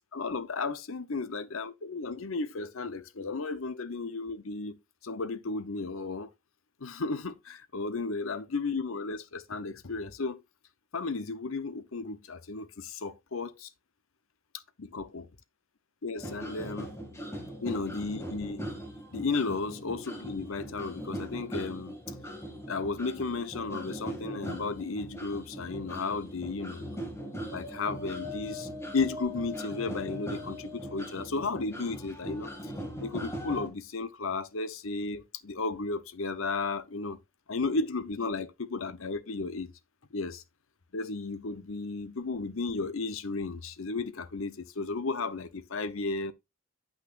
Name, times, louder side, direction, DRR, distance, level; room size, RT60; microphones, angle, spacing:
voice 1, 0.1-4.8 5.0-6.3 6.8-10.4 10.9-13.7 14.9-15.2 16.0-16.9 17.6-18.7 19.1-22.0 22.7-27.0 27.5-32.7 33.0-37.2 37.5-39.7 40.1-40.4 40.9-46.3, left 3 dB, 70° left, 0.8 m, -34 dB
sound 1, 16.2-33.7, equal, 10° left, 2.1 m, -40 dB
8.8 x 8.3 x 2.5 m
head